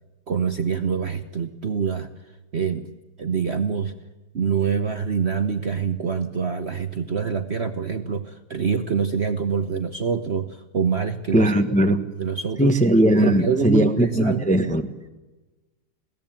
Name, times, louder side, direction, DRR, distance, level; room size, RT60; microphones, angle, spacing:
voice 1, 0.3-2.1 2.5-2.9 3.2-3.9 4.3-11.5 12.1-12.8 13.2-14.6, right 6 dB, 45° right, 8 dB, 0.9 m, -25 dB
voice 2, 11.3-12.0 12.6-14.8, equal, 5° left, 7 dB, 0.9 m, -19 dB
21.5 x 17.0 x 8.9 m, 1.1 s
omnidirectional pair, 2.0 m